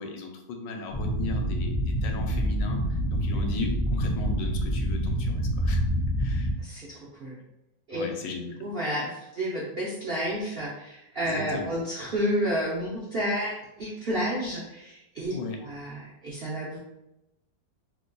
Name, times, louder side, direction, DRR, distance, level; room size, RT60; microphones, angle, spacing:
voice 1, 0.0-5.8 6.2-6.5 7.9-8.6 11.2-11.7 15.3-15.6, left 3 dB, 85° left, 3 dB, 1.3 m, -36 dB
sound 1, 0.9-6.5, equal, 65° left, 0.4 m, -27 dB
voice 2, 6.6-7.4 7.9-8.0 8.6-15.3 15.6-16.8, equal, 70° right, -6 dB, 0.5 m, -31 dB
3.0 x 2.2 x 3.8 m, 0.91 s
omnidirectional pair, 1.9 m